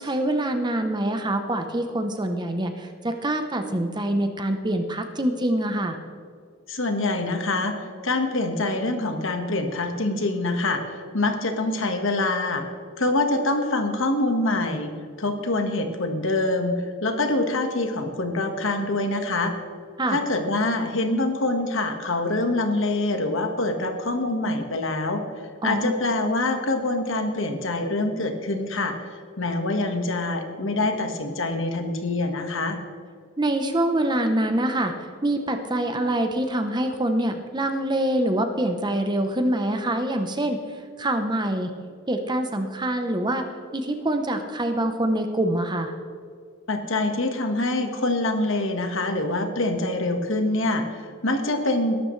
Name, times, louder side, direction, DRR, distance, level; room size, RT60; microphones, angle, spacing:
voice 1, 0.0-6.0 20.0-20.2 25.6-26.0 33.4-40.6 41.0-41.7 42.1-43.4 43.7-45.9, right 1 dB, 20° right, 6 dB, 0.8 m, -25 dB
voice 2, 6.7-7.8 8.0-12.6 13.0-14.9 15.2-19.5 20.1-25.2 25.6-32.8 46.7-52.0, left 2 dB, 60° left, 5 dB, 1.6 m, -25 dB
21.5 x 12.0 x 3.3 m, 2.2 s
head